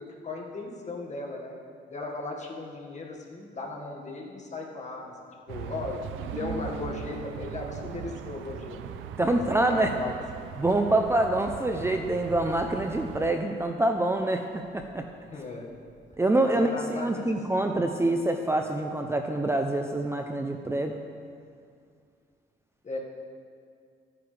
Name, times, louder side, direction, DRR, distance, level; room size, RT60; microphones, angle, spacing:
voice 1, 0.0-1.6 1.9-5.2 5.5-8.8 9.3-10.1 15.2-15.7 16.4-17.5 22.8-23.0, left 3 dB, 35° left, -1 dB, 1.9 m, -37 dB
sound 1, 5.5-13.3, right 8 dB, 85° right, 0.6 m, -40 dB
Harp, 6.3-13.8 14.0-15.2 15.4-16.1, right 2 dB, 65° right, 1.4 m, -46 dB
voice 2, 9.2-9.9 10.6-15.1 16.2-21.0, right 2 dB, 15° right, 4 dB, 0.6 m, -26 dB
14.5 x 9.7 x 3.4 m, 2.2 s
cardioid pair, 90°, 20 cm